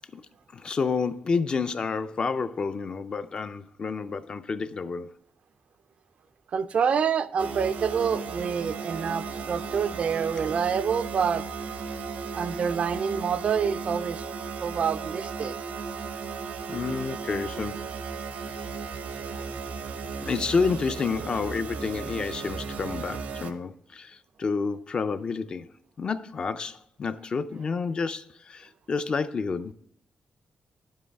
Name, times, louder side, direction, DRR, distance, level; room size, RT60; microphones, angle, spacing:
voice 1, 0.5-5.1 16.7-17.9 20.2-25.7 26.0-29.7, left 5 dB, 35° left, 0.4 m, -29 dB
voice 2, 6.5-11.5 12.3-14.2 14.6-15.6 19.2-19.5, right 7 dB, 50° right, 0.4 m, -27 dB
sound 1, 7.4-23.5, right 5 dB, 85° right, 0.9 m, -35 dB
10.5 x 7.5 x 3.3 m
wide cardioid pair, 180°, 3 cm